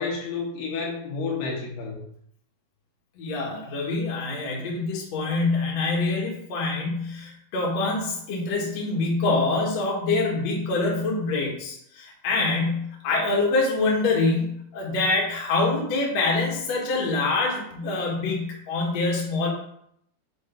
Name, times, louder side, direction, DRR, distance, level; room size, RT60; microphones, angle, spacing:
voice 1, 0.0-2.0, left 4 dB, 85° left, -3 dB, 3.6 m, -30 dB
voice 2, 3.2-19.5, left 3 dB, 50° left, -3 dB, 2.5 m, -25 dB
6.4 x 4.9 x 4.5 m, 0.72 s
omnidirectional pair, 4.4 m